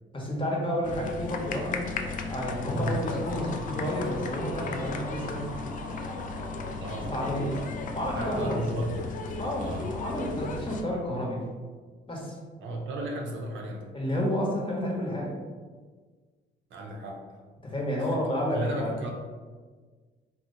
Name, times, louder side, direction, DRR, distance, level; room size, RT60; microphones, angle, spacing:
voice 1, 0.1-1.9 2.3-5.4 7.1-8.6 9.4-11.4 12.1-12.4 13.9-15.3 17.6-18.9, equal, 25° left, -3 dB, 0.9 m, -30 dB
sound 1, 0.8-10.8, left 3 dB, 40° left, 0.4 m, -35 dB
sound 2, 3.2-10.6, left 1 dB, 65° left, 0.9 m, -47 dB
voice 2, 6.8-7.7 8.1-9.9 12.6-13.9 16.7-17.4 18.0-19.1, right 1 dB, 75° right, 0 dB, 0.6 m, -35 dB
2.9 x 2.0 x 3.7 m, 1.5 s
cardioid pair, 90°, 20 cm